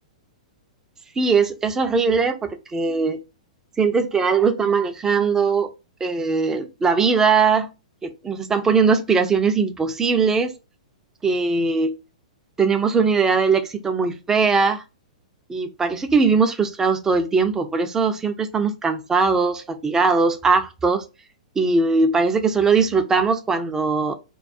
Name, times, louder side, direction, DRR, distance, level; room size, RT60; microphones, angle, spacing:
voice 1, 1.2-3.2 3.8-5.7 6.0-7.7 8.0-10.5 11.2-11.9 12.6-14.8 15.5-21.0 21.6-24.1, right 4 dB, 15° right, 0.4 m, -20 dB
2.2 x 2.2 x 2.5 m
hypercardioid pair, 120°, 4 cm